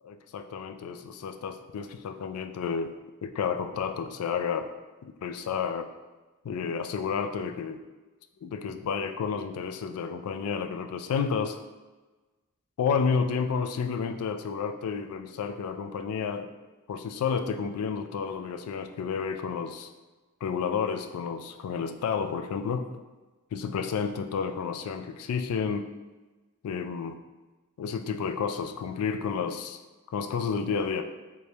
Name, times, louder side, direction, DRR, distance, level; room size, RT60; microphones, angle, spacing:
voice 1, 0.1-2.9 3.2-4.7 5.0-5.9 6.4-7.8 8.4-11.6 12.8-16.5 16.9-19.9 20.4-22.9 23.5-25.9 26.6-27.2 27.8-29.8 30.1-31.0, left 6 dB, 80° left, 8 dB, 0.3 m, -31 dB
3.3 x 3.2 x 2.8 m, 1.2 s
head